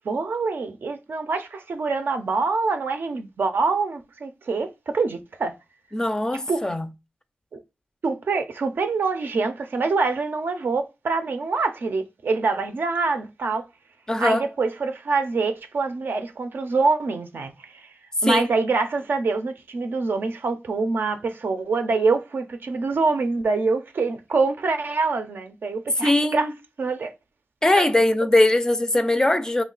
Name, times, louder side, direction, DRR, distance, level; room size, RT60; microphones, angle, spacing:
voice 1, 0.0-5.5 6.5-6.6 7.5-7.6 8.0-13.6 14.2-17.9 18.2-26.5 26.8-27.1 27.8-27.9, right 4 dB, 70° right, 0.5 m, -25 dB
voice 2, 5.9-6.9 14.1-14.5 18.2-18.5 26.0-26.5 27.6-29.6, left 1 dB, 20° left, 0.4 m, -20 dB
3.0 x 2.2 x 3.7 m
wide cardioid pair, 95°, 4 cm